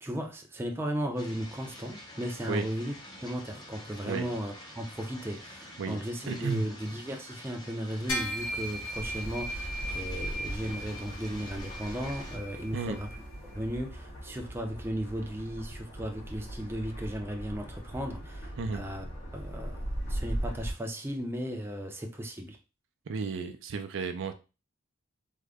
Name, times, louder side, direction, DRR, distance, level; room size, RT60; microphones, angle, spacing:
voice 1, 0.0-2.9 3.2-13.1 13.5-19.1 19.3-22.6, equal, 10° right, 0.5 m, -36 dB
sound 1, 1.2-12.4, left 1 dB, 20° left, 0.8 m, -48 dB
voice 2, 6.3-6.6 12.7-13.0 18.6-18.8 23.1-24.3, right 4 dB, 65° right, 0.4 m, -33 dB
sound 2, 8.1-13.7, equal, 80° left, 1.1 m, -38 dB
sound 3, 8.9-20.7, right 1 dB, 65° left, 2.0 m, -39 dB
3.6 x 2.1 x 3.4 m
head